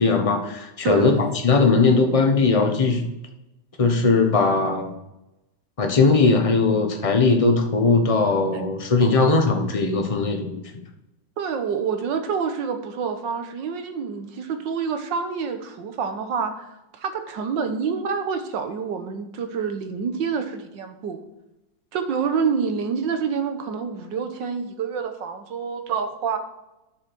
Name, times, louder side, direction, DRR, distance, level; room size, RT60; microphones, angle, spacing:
voice 1, 0.0-3.0 3.8-4.9 5.8-10.6, left 3 dB, 25° left, 4 dB, 0.9 m, -19 dB
voice 2, 0.8-1.3 11.4-21.2 21.9-26.4, right 6 dB, 80° right, 7 dB, 1.7 m, -27 dB
9.8 x 6.4 x 6.1 m, 0.93 s
omnidirectional pair, 1.9 m